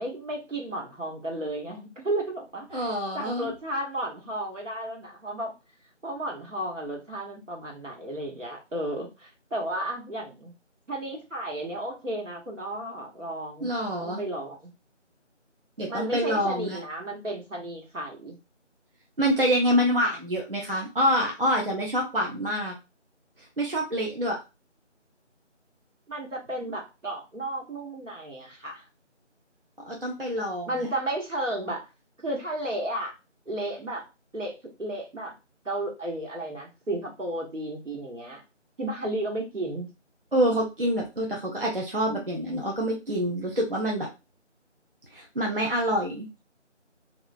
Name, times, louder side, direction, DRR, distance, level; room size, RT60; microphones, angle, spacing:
voice 1, 0.0-5.5 6.0-10.5 10.9-13.7 14.0-14.7 15.9-18.4 26.1-28.9 30.7-31.9 32.2-33.1 33.5-34.1 34.3-35.3 35.6-38.4 38.8-39.9, right 1 dB, 80° right, -1 dB, 1.1 m, -33 dB
voice 2, 2.7-3.5 13.6-14.2 15.8-16.8 19.2-22.7 23.6-24.4 29.8-30.9 40.3-44.1 45.1-46.4, equal, 50° right, -1 dB, 0.5 m, -26 dB
2.3 x 2.1 x 2.5 m, 0.27 s
figure-of-eight pair, 175°, 37 cm